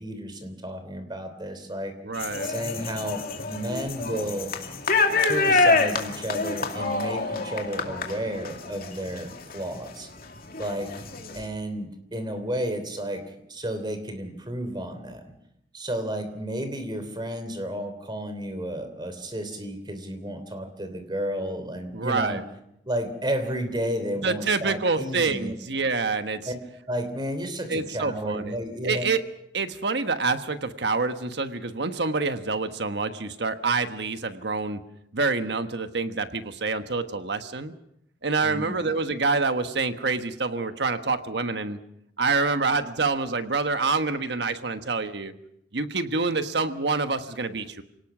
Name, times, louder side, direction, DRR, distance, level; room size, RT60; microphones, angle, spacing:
voice 1, 0.0-2.0 2.4-4.5 5.2-10.1 10.6-10.9 11.3-15.3 15.7-22.4 22.8-25.5 26.5-26.6 26.9-29.0 38.4-38.8, equal, 25° right, 9 dB, 3.1 m, -32 dB
voice 2, 2.0-2.5 21.9-22.4 24.2-26.5 27.7-28.6 28.8-29.2 29.5-34.8 35.1-37.7 38.2-41.8 42.2-45.3 45.7-47.8, right 4 dB, 70° right, 9 dB, 1.3 m, -27 dB
sound 1, 2.2-9.9 10.3-11.5, left 3 dB, 55° left, 2.4 m, -26 dB
27.5 x 18.5 x 6.2 m, 0.78 s
head